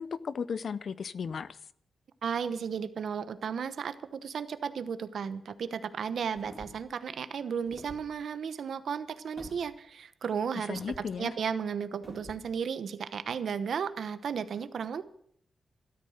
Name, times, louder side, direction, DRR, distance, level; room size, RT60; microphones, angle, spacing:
voice 1, 0.0-1.6 10.7-11.3, left 6 dB, 60° left, 16 dB, 0.5 m, -35 dB
voice 2, 2.2-15.0, right 7 dB, 75° right, 12 dB, 1.0 m, -34 dB
sound 1, 6.3-6.9 7.6-8.1 9.4-9.6 10.7-11.1 12.0-12.4, equal, 10° left, 3.4 m, -47 dB
13.0 x 13.0 x 6.4 m, 0.66 s
wide cardioid pair, 105°, 0 cm